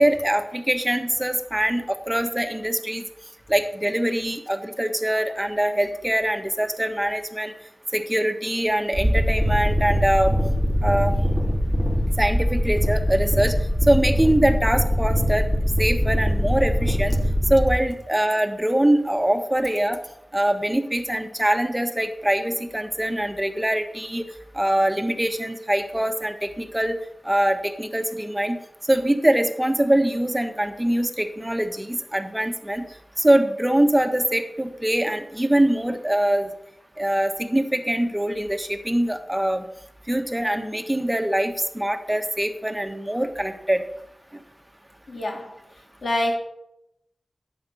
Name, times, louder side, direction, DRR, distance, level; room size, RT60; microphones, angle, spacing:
voice 1, 0.0-3.0 3.5-7.5 7.9-10.3 10.8-11.1 12.2-13.5 13.8-15.5 15.8-17.1 17.5-20.0 20.3-24.2 24.5-27.0 27.2-28.6 28.8-32.9 33.2-36.5 37.0-39.7 40.1-43.8, right 1 dB, 10° right, 6 dB, 1.3 m, -23 dB
sound 1, 8.9-17.7, equal, 15° left, 4.4 m, -22 dB
voice 2, 45.1-45.5 46.0-46.4, left 1 dB, 85° left, 1 dB, 2.6 m, -25 dB
11.0 x 8.1 x 5.6 m, 0.81 s
wide cardioid pair, 60°, 0 cm